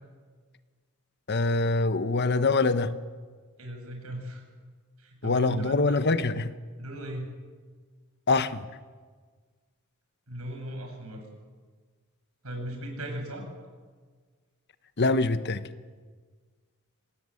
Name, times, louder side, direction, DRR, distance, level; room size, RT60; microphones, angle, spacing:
voice 1, 1.3-2.9 5.2-6.5 8.3-8.7 15.0-15.6, left 3 dB, 50° left, 12 dB, 1.1 m, -24 dB
voice 2, 3.6-4.4 5.0-6.0 6.8-7.3 10.3-11.3 12.4-13.5, right 1 dB, 85° right, 3 dB, 7.4 m, -36 dB
27.0 x 20.0 x 8.6 m, 1.5 s
head